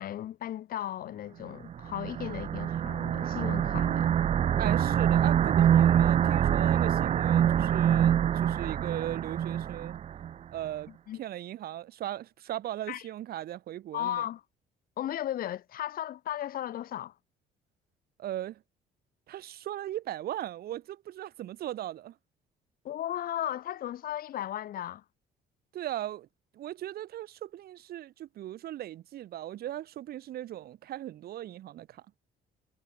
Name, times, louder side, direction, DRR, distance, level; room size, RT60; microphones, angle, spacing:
voice 1, 0.0-4.1 10.9-11.2 12.9-13.1 13.9-14.4 15.0-17.1 22.8-25.0, left 12 dB, 60° left, 1.8 m, -35 dB
sound 1, 1.7-10.3, right 9 dB, 40° right, 0.5 m, -25 dB
voice 2, 4.6-10.0 10.5-10.9 11.2-14.2 18.2-18.6 19.3-22.1 25.7-26.3 26.5-32.0, right 13 dB, 65° right, 2.4 m, -38 dB
cardioid pair, 110°, 17 cm